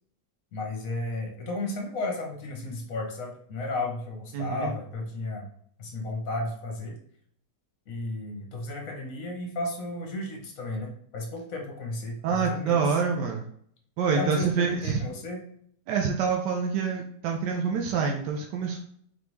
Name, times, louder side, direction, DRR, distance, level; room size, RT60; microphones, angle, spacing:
voice 1, 0.5-5.5 5.8-7.0 7.9-12.9 14.1-15.5, left 2 dB, 55° left, 1 dB, 1.4 m, -33 dB
voice 2, 4.3-4.7 12.2-13.5 14.0-15.0 15.9-18.8, right 5 dB, 90° right, 1 dB, 1.2 m, -26 dB
4.2 x 3.4 x 3.1 m, 0.64 s
omnidirectional pair, 1.8 m